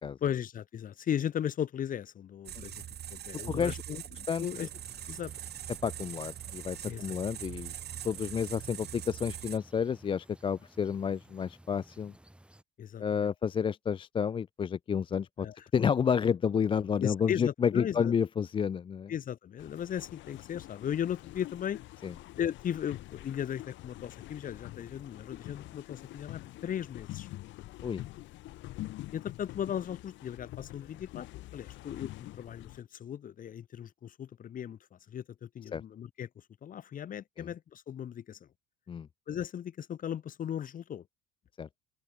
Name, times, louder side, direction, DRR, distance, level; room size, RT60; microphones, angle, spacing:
voice 1, 0.2-2.8 3.1-4.7 5.1-5.3 6.8-7.0 12.8-13.3 15.4-15.5 17.0-18.1 19.1-21.8 22.4-27.3 29.1-34.8 35.1-36.3 36.6-38.5 39.3-41.0, left 9 dB, 40° left, 1.0 m, -37 dB
sound 1, 2.5-9.6, right 10 dB, 50° right, 3.7 m, -42 dB
voice 2, 3.5-3.8 4.3-4.5 5.8-7.7 8.0-12.1 13.0-15.5 15.7-19.1 22.0-22.1 27.8-28.1 35.7-35.8 37.4-37.5 38.9-39.1 41.6-41.7, left 7 dB, 25° left, 0.4 m, -30 dB
sound 2, 4.3-12.6, right 1 dB, 5° right, 4.3 m, -57 dB
sound 3, 19.6-32.8, left 17 dB, 65° left, 1.2 m, -46 dB
open air
supercardioid pair, 85°, 21 cm